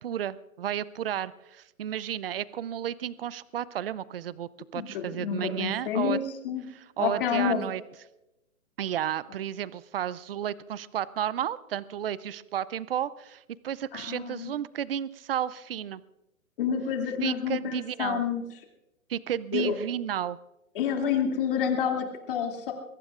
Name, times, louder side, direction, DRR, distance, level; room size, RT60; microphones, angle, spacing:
voice 1, 0.0-6.2 6.7-7.8 8.8-16.0 17.2-18.2 19.1-20.4, right 10 dB, 45° right, 19 dB, 0.5 m, -32 dB
voice 2, 4.7-6.2 6.4-6.6 7.0-7.6 13.9-14.5 16.6-18.4 19.5-19.7 20.7-22.7, left 8 dB, 40° left, 2 dB, 2.6 m, -28 dB
22.5 x 22.0 x 2.5 m, 0.93 s
hypercardioid pair, 160°, 41 cm